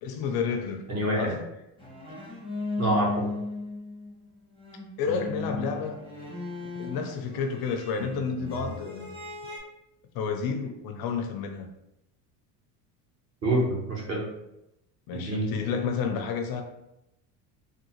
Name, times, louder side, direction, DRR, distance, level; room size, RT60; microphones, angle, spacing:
voice 1, 0.0-0.8 1.1-1.5 5.0-6.0 6.8-9.2 10.1-11.7 15.1-16.6, left 5 dB, 50° left, 5 dB, 0.5 m, -30 dB
voice 2, 0.9-1.3 2.8-3.3 13.4-14.2 15.1-15.5, right 1 dB, 35° right, -4 dB, 1.2 m, -26 dB
sound 1, 1.8-4.3 4.6-9.6, left 2 dB, 10° right, 1.1 m, -36 dB
3.6 x 2.3 x 2.8 m, 0.86 s
supercardioid pair, 95°, 47 cm